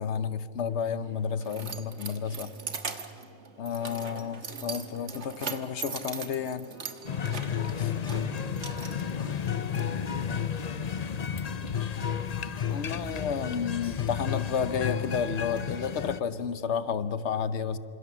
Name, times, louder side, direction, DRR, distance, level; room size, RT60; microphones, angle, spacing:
voice 1, 0.0-2.5 3.6-6.7 12.7-17.8, left 7 dB, 85° left, 13 dB, 1.2 m, -31 dB
Keys jangling, 0.7-9.8, right 5 dB, 90° right, 1.8 m, -41 dB
voice 2, 3.8-4.4 7.2-12.4, equal, 50° right, 3 dB, 4.4 m, -51 dB
sound 1, 7.0-16.2, left 7 dB, 40° left, 0.8 m, -32 dB
28.0 x 26.0 x 7.1 m, 2.8 s
omnidirectional pair, 1.1 m